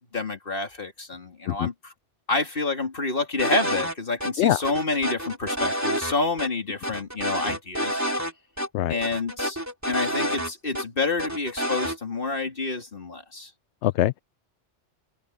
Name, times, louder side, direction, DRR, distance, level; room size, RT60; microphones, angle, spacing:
voice 1, 0.1-1.9 2.3-8.0 8.9-9.6 9.9-13.5, left 3 dB, 50° left, 2.9 m, -28 dB
sound 1, 3.4-4.3 4.6-6.1 6.4-6.5 6.8-8.3 8.6-8.7 9.0-10.8 11.2-12.0, equal, 15° right, 3.0 m, -28 dB
voice 2, 13.8-14.2, left 13 dB, 75° left, 0.8 m, -23 dB
omnidirectional pair, 1.2 m